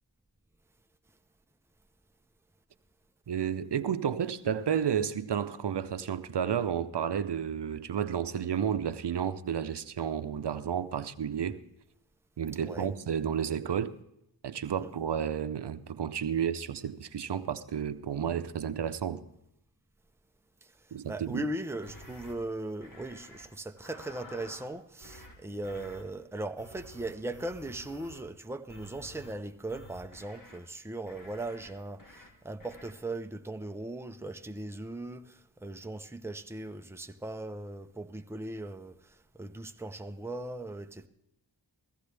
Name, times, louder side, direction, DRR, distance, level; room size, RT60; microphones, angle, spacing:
voice 1, 3.3-11.6 12.4-13.9 14.4-19.2 20.9-21.4, right 8 dB, 70° right, 0.7 m, -31 dB
voice 2, 20.6-41.1, right 2 dB, 5° right, 0.7 m, -39 dB
sound 1, 21.8-22.3 22.8-23.5 23.8-24.7 25.0-25.3 25.6-26.0 26.6-28.3 28.7-29.3 29.7-30.6 31.1-31.7 32.0-32.3 32.6-32.9, left 1 dB, 45° left, 2.6 m, -50 dB
16.0 x 15.5 x 3.4 m
wide cardioid pair, 70°, 43 cm